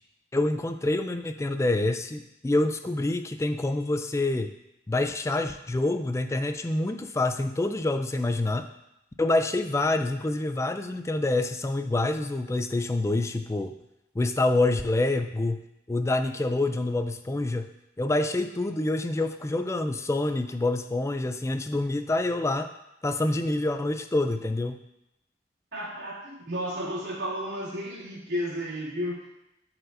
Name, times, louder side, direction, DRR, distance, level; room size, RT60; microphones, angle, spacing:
voice 1, 0.3-4.5 4.9-8.7 9.2-13.7 14.2-17.7 18.0-22.7 23.0-24.8, left 2 dB, 15° left, 8 dB, 0.4 m, -27 dB
voice 2, 25.7-29.3, equal, 75° right, -7 dB, 2.7 m, -33 dB
13.0 x 4.4 x 2.6 m, 0.86 s
head